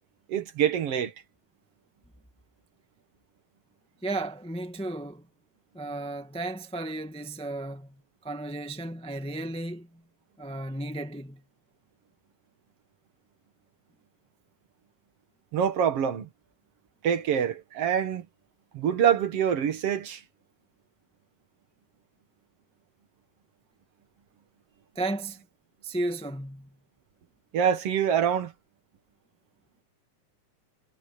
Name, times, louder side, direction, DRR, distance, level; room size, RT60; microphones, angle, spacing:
voice 1, 0.3-1.1 15.5-16.3 17.0-18.3 18.7-20.2 27.5-28.5, right 8 dB, 55° right, 2.4 m, -25 dB
voice 2, 4.0-5.3 5.7-10.0 10.4-11.4 24.9-25.4 25.8-26.7, right 2 dB, 5° left, 0.6 m, -34 dB
omnidirectional pair, 3.5 m